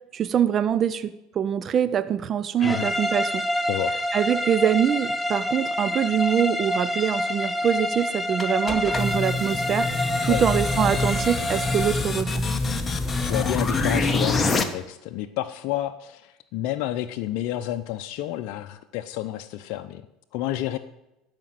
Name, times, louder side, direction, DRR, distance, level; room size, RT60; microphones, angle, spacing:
voice 1, 0.1-3.5 4.1-12.4, right 9 dB, 40° right, 15 dB, 0.5 m, -24 dB
sound 1, 2.6-12.1, left 1 dB, 5° left, 0.7 m, -27 dB
sound 2, 8.4-14.6, left 3 dB, 20° left, 1.2 m, -25 dB
voice 2, 13.2-20.0 20.3-20.8, left 13 dB, 70° left, 7 dB, 0.6 m, -30 dB
12.0 x 5.2 x 7.5 m, 0.92 s
supercardioid pair, 100°, 0 cm